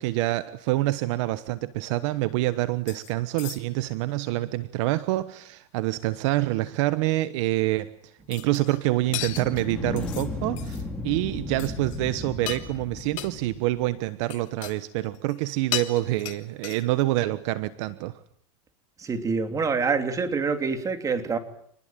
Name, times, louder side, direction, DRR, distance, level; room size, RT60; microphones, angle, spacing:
voice 1, 0.0-18.2, right 17 dB, 55° right, 1.2 m, -27 dB
sound 1, 2.9-3.1 3.4-3.9 8.3-8.9 9.1-10.3 10.6-10.8 11.2-11.3 11.6-12.0 12.3-12.8 13.2-13.3 14.2-14.8 15.1-15.5 15.7-17.0, left 15 dB, 65° left, 2.8 m, -35 dB
sound 2, 9.0-13.8, left 2 dB, 5° left, 4.4 m, -35 dB
voice 2, 19.0-21.4, right 5 dB, 20° right, 3.1 m, -26 dB
28.0 x 20.5 x 9.1 m
supercardioid pair, 145°, 18 cm